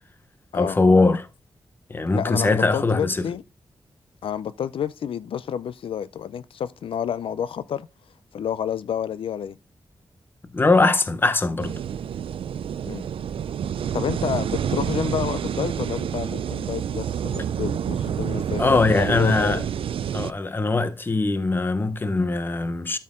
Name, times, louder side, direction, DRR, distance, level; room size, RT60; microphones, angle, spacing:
voice 1, 0.5-1.3 1.9-3.2 10.5-11.7 18.6-19.6 20.1-23.0, left 3 dB, 25° left, 0.7 m, -21 dB
voice 2, 2.1-3.4 4.2-7.9 8.3-9.6 12.8-13.0 13.9-19.6, left 8 dB, 85° left, 0.4 m, -29 dB
sound 1, 11.6-20.3, right 8 dB, 85° right, 0.4 m, -28 dB
12.0 x 4.3 x 3.6 m
wide cardioid pair, 175°, 9 cm